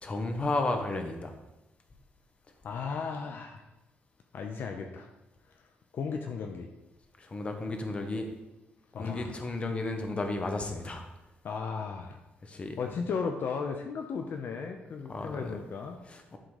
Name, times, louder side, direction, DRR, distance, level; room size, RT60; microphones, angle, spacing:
voice 1, 0.0-1.4 7.2-8.3 8.9-11.1 12.4-12.8 15.1-15.6 16.1-16.4, left 2 dB, 30° left, 5 dB, 1.1 m, -33 dB
voice 2, 2.6-3.6 4.3-5.1 5.9-6.7 8.9-9.3 11.4-12.2 12.8-16.0, left 5 dB, 60° left, 4 dB, 0.7 m, -35 dB
11.5 x 3.9 x 4.9 m, 0.96 s
cardioid pair, 130°, 4 cm